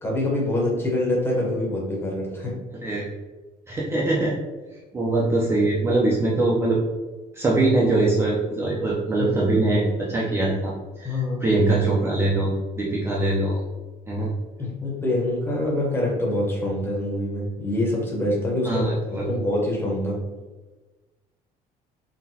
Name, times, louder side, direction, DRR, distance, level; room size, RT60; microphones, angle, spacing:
voice 1, 0.0-2.6 9.2-9.3 11.0-11.4 14.6-18.9 19.3-20.2, left 1 dB, 15° left, -3 dB, 0.8 m, -25 dB
voice 2, 2.7-3.1 3.7-4.4 4.9-6.8 7.3-13.6 14.1-14.3 18.7-19.3, right 2 dB, 15° right, -5 dB, 0.4 m, -22 dB
3.8 x 2.1 x 2.7 m, 1.2 s
cardioid pair, 160°, 15 cm